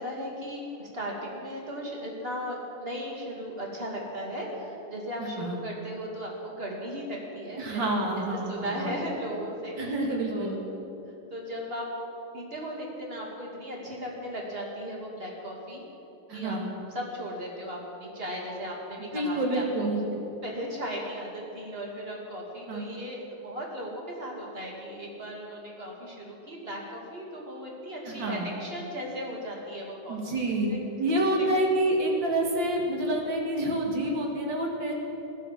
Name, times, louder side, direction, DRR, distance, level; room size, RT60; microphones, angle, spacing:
voice 1, 0.0-8.0 8.3-9.8 10.3-10.6 11.3-11.9 12.3-15.8 16.3-16.6 16.9-19.9 20.4-30.2, equal, 25° right, -2 dB, 2.9 m, -36 dB
voice 2, 5.2-5.6 7.6-9.0 9.8-10.6 16.3-16.7 19.1-20.2 22.7-22.9 28.0-28.6 30.1-30.7 31.0-34.9, right 1 dB, 60° right, 0 dB, 3.1 m, -28 dB
16.0 x 12.0 x 7.7 m, 3.0 s
omnidirectional pair, 2.3 m